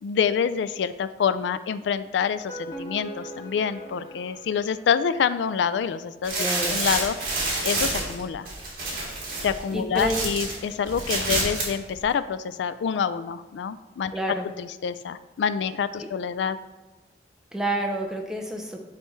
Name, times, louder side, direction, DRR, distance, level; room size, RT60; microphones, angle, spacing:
voice 1, 0.0-6.4 6.7-7.2 7.6-8.5 9.4-14.1 14.6-16.6, left 7 dB, 85° left, 13 dB, 0.3 m, -27 dB
sound 1, 2.3-5.4, right 1 dB, 20° left, 1.7 m, -41 dB
sound 2, 6.2-10.6 10.9-11.7 12.0-12.1, right 2 dB, 55° right, 1.8 m, -28 dB
voice 2, 6.4-6.8 9.3-9.5 9.7-10.3 14.1-14.5 16.0-16.1 17.5-18.8, right 1 dB, 5° right, 1 dB, 0.6 m, -29 dB
9.8 x 3.3 x 3.1 m, 1.1 s
head